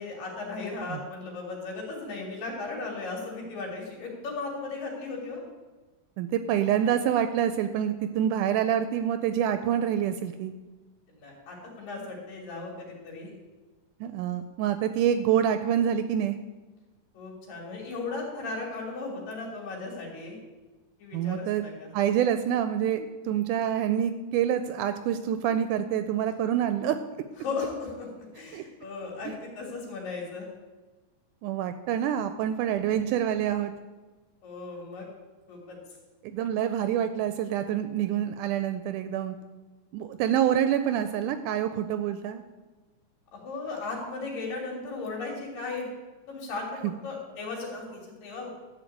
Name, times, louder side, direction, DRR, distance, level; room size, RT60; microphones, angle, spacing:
voice 1, 0.0-5.4 11.1-13.3 17.1-20.4 21.0-21.9 27.4-30.5 34.4-35.0 35.5-35.8 43.3-45.9 46.3-48.5, left 3 dB, 85° left, -1 dB, 4.2 m, -36 dB
voice 2, 6.2-10.5 14.0-16.4 21.1-21.6 21.9-27.0 28.5-28.6 29.3-29.4 31.4-33.7 36.2-39.4 39.9-42.4, right 10 dB, 80° right, 10 dB, 2.0 m, -26 dB
12.5 x 4.7 x 8.4 m, 1.2 s
omnidirectional pair, 3.8 m